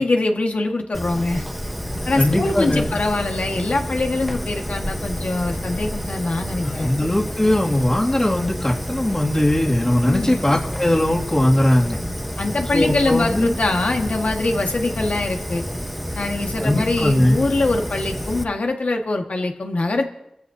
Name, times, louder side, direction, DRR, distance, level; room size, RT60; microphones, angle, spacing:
voice 1, 0.0-1.4 2.0-6.9 10.0-10.4 12.4-15.6 16.1-20.1, left 2 dB, 80° left, 2 dB, 1.7 m, -23 dB
Fire, 0.9-18.4, equal, ahead, 1.1 m, -29 dB
voice 2, 2.2-3.0 6.6-12.0 12.7-13.5 16.6-17.4, left 1 dB, 30° left, -3 dB, 2.4 m, -19 dB
25.5 x 14.5 x 2.8 m, 0.84 s
wide cardioid pair, 45°, 2 cm